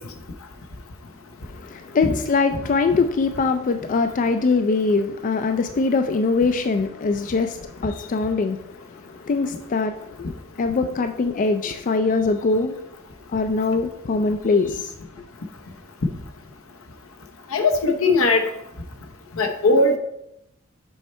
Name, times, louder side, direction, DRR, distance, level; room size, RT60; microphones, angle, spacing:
voice 1, 1.5-12.8 13.3-14.9, left 4 dB, 40° left, 7 dB, 0.3 m, -22 dB
voice 2, 17.5-18.5 19.4-20.0, left 2 dB, 80° left, 4 dB, 0.9 m, -19 dB
6.4 x 4.5 x 4.2 m, 0.83 s
head